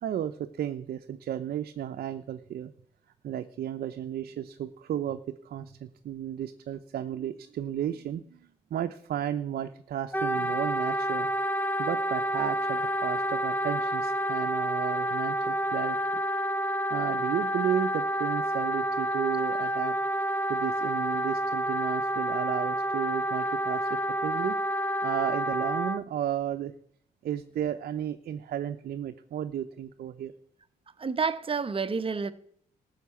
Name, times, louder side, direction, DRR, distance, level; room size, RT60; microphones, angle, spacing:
voice 1, 0.0-2.7 3.2-11.3 11.8-16.0 16.9-19.9 20.5-24.6 25.0-26.7 27.2-30.3, right 10 dB, 70° right, 0.7 m, -33 dB
Wind instrument woodwind instrument, 10.1-26.0, right 1 dB, 10° left, 0.8 m, -29 dB
voice 2, 31.0-32.3, right 5 dB, 35° right, 0.9 m, -29 dB
14.0 x 6.6 x 8.3 m
cardioid pair, 70°, 16 cm